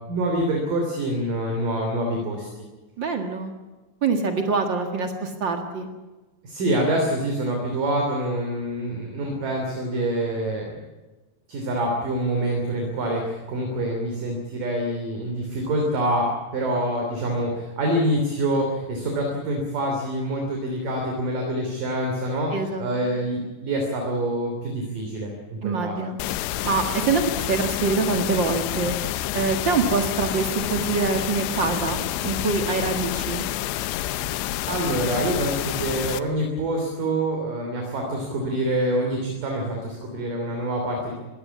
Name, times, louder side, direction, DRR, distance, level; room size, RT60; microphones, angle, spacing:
voice 1, 0.1-2.6 6.4-10.8 11.5-26.0 34.7-41.2, right 1 dB, 50° right, 1 dB, 4.5 m, -26 dB
voice 2, 3.0-3.5 4.0-5.9 22.5-23.1 25.6-26.2 26.6-28.9 29.3-33.4, right 4 dB, 65° right, 5 dB, 1.1 m, -25 dB
sound 1, 26.2-36.2, left 14 dB, 80° left, 3.0 m, -28 dB
22.0 x 17.5 x 8.4 m, 1.2 s
omnidirectional pair, 5.1 m